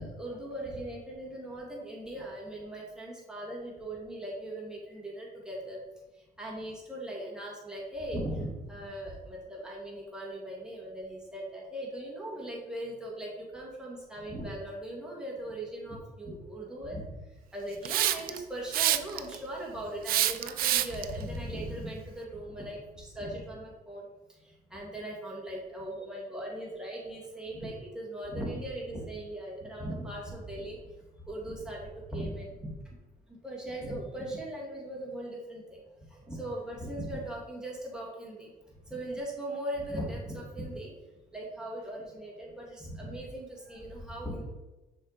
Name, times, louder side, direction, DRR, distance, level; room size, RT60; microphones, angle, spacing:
voice 1, 0.0-5.8 6.4-17.0 17.5-24.1 24.7-30.8 31.2-32.7 33.4-35.8 36.1-38.5 38.9-40.9 41.3-44.5, right 1 dB, 5° right, -4 dB, 2.1 m, -39 dB
Hiss, 17.9-18.4 18.7-19.4 20.1-21.0, right 13 dB, 60° right, 0.4 m, -26 dB
6.2 x 4.7 x 4.0 m, 1.1 s
cardioid pair, 110°, 17 cm